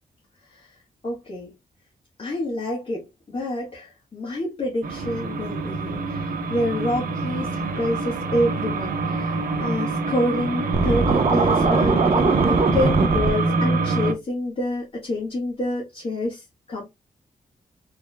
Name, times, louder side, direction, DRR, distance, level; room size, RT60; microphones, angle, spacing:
voice 1, 1.0-1.5 2.2-16.8, left 1 dB, 40° left, 1.7 m, -27 dB
sound 1, 4.8-14.1, right 3 dB, 85° right, 1.0 m, -26 dB
Scratching (performance technique), 10.7-13.3, right 4 dB, 40° right, 0.7 m, -20 dB
5.0 x 3.5 x 2.3 m
wide cardioid pair, 155°, 15 cm